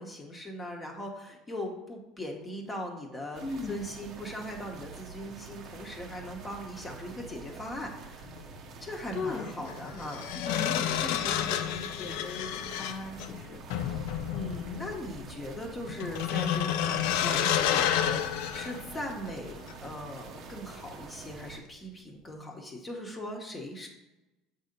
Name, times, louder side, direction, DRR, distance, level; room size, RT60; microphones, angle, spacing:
voice 1, 0.0-8.3 8.8-10.3 13.9-23.9, equal, 20° left, 1 dB, 1.0 m, -40 dB
sound 1, 3.3-21.6, right 4 dB, 50° right, 0.7 m, -47 dB
voice 2, 3.4-3.8 8.8-9.5 10.3-13.6, left 4 dB, 45° left, 0 dB, 1.1 m, -38 dB
sound 2, 8.3-8.4 9.7-19.3 19.7-19.9, left 10 dB, 80° left, 0.4 m, -30 dB
7.3 x 2.8 x 5.2 m, 0.98 s
supercardioid pair, 120°, 0 cm